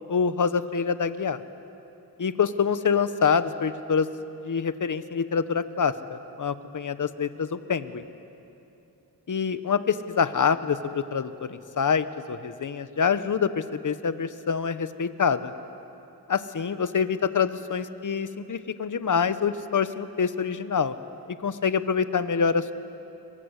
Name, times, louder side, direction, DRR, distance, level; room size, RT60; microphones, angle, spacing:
voice 1, 0.1-1.4 2.2-4.1 4.4-8.0 9.3-15.5 16.3-20.9 21.4-22.7, left 6 dB, 50° left, 12 dB, 1.2 m, -26 dB
27.5 x 23.0 x 8.3 m, 2.9 s
cardioid pair, 75°, 39 cm